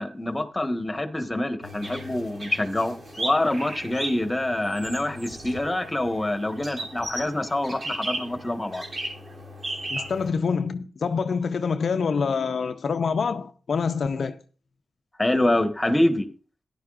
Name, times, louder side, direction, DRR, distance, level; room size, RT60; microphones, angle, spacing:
voice 1, 0.0-8.8 15.2-16.3, left 1 dB, 20° left, 1.5 m, -26 dB
sound 1, 1.6-10.3, right 1 dB, 55° right, 3.2 m, -36 dB
voice 2, 9.9-14.4, left 5 dB, 70° left, 0.6 m, -26 dB
15.0 x 10.5 x 2.5 m
cardioid pair, 70°, 0 cm